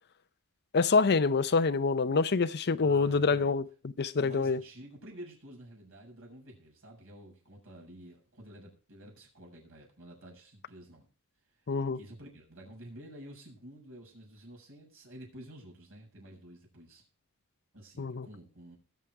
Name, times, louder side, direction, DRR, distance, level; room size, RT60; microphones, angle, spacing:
voice 1, 0.7-4.6 11.7-12.0 18.0-18.3, left 4 dB, 50° left, 0.6 m, -26 dB
voice 2, 2.8-3.6 4.2-11.1 11.9-17.0 17.7-18.8, right 1 dB, 65° right, 7.3 m, -50 dB
20.5 x 7.5 x 4.7 m
head